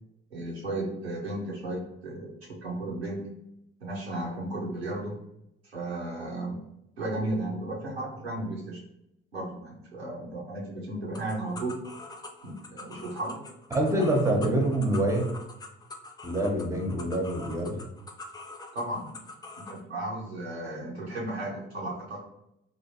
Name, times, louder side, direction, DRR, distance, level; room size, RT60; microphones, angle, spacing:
voice 1, 0.3-3.3 3.8-5.2 5.6-6.6 7.0-8.8 9.3-11.8 12.4-13.4 13.9-14.1 18.7-19.2 19.6-22.2, right 1 dB, 85° right, -4 dB, 0.7 m, -34 dB
sound 1, 11.1-19.8, left 3 dB, 15° left, 0.4 m, -44 dB
voice 2, 13.7-15.3 16.2-17.8, right 1 dB, 10° right, 1 dB, 0.9 m, -26 dB
3.3 x 2.6 x 2.7 m, 0.82 s
figure-of-eight pair, 45°, 31 cm